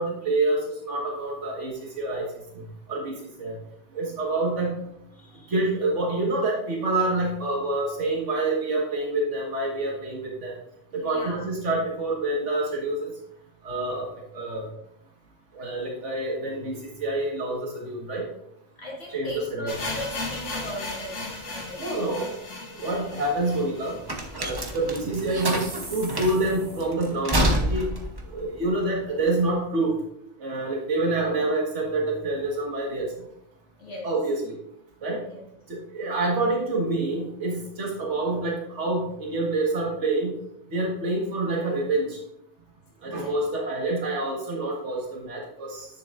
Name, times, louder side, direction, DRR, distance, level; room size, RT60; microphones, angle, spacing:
voice 1, 0.0-2.2 2.9-3.1 3.4-3.5 3.9-4.8 5.5-10.5 10.9-13.1 13.6-14.6 15.5-18.2 19.1-19.3 19.6-19.7 21.8-22.3 22.7-24.0 24.3-28.0 28.3-30.0 30.4-33.1 34.0-34.6 35.0-35.2 35.7-40.4 40.7-42.2 43.0-45.9, right 2 dB, 85° right, -2 dB, 1.9 m, -27 dB
voice 2, 5.1-5.5 11.0-11.5 18.8-23.2 33.8-34.1 35.2-35.5 43.0-43.4, equal, 65° left, -3 dB, 2.3 m, -39 dB
sound 1, 19.7-25.6 25.8-25.9 26.2-26.3 26.9-27.0, left 2 dB, 85° left, 1.6 m, -37 dB
sound 2, 22.8-29.6, right 1 dB, 25° right, 0.8 m, -29 dB
10.0 x 6.8 x 2.5 m, 0.77 s
omnidirectional pair, 1.2 m